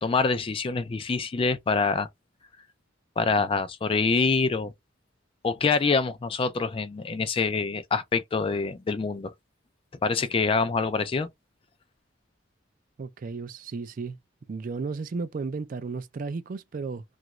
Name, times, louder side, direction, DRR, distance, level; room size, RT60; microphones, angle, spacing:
voice 1, 0.0-2.1 3.2-4.7 5.4-9.3 10.0-11.3, left 4 dB, 30° left, 0.3 m, -25 dB
voice 2, 13.0-14.2 14.5-17.0, right 4 dB, 45° right, 0.4 m, -34 dB
2.9 x 2.4 x 2.9 m
head